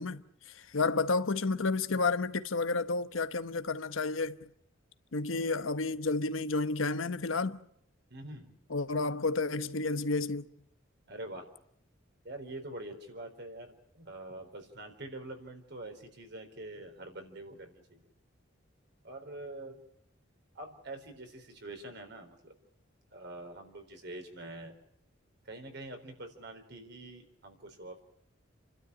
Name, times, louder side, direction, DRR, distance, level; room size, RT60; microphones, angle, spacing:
voice 1, 0.0-4.5 5.1-7.6 8.7-10.5, left 3 dB, 85° left, 1.1 m, -31 dB
voice 2, 8.1-8.6 11.1-11.5 12.2-18.1 19.0-19.8 20.5-22.5 23.1-24.7 25.4-28.0, right 2 dB, 60° right, 4.1 m, -45 dB
29.5 x 12.5 x 9.8 m
head